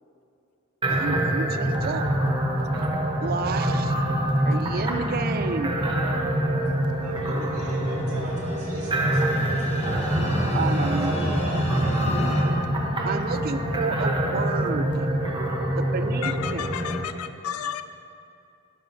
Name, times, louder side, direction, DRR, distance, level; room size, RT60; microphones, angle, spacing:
sound 1, 0.8-17.0, right 1 dB, 20° right, 0.8 m, -25 dB
voice 1, 0.9-2.1 3.2-4.0 4.5-5.7 10.5-11.9 13.0-15.1 15.8-16.7, right 4 dB, 45° right, 10 dB, 0.4 m, -31 dB
voice 2, 7.0-10.9 11.2-11.3, right 1 dB, 85° right, -4 dB, 2.1 m, -41 dB
sound 2, 7.9-12.4, equal, 30° left, 1.0 m, -30 dB
voice 3, 16.2-17.8, left 9 dB, 75° left, 10 dB, 0.4 m, -32 dB
13.0 x 10.5 x 2.6 m, 2.6 s
head